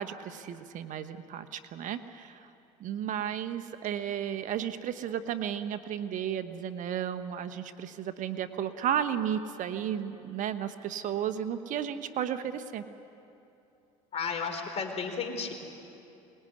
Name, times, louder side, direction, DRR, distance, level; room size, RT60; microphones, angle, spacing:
voice 1, 0.0-2.5 2.8-12.8, right 9 dB, 55° right, 10 dB, 1.2 m, -33 dB
voice 2, 14.1-15.5, left 5 dB, 45° left, 5 dB, 4.3 m, -33 dB
23.5 x 20.5 x 9.7 m, 2.8 s
supercardioid pair, 85°, 15 cm